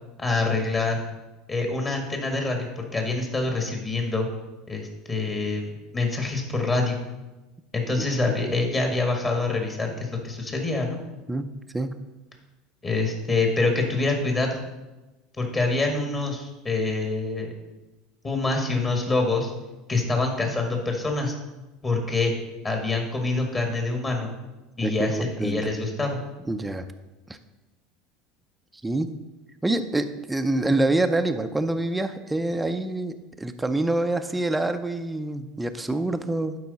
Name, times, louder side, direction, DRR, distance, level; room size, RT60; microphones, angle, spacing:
voice 1, 0.2-1.0 1.5-4.3 4.7-7.0 7.7-11.0 12.8-14.6 15.4-17.5 18.2-19.5 19.9-21.3 21.8-22.3 22.6-24.3 24.8-26.2, left 3 dB, 30° left, 2 dB, 1.8 m, -26 dB
voice 2, 24.8-25.7 26.5-26.8 28.8-29.1 29.6-36.6, right 2 dB, 10° right, 7 dB, 0.6 m, -26 dB
11.5 x 4.7 x 4.1 m, 1.1 s
hypercardioid pair, 85°, 0 cm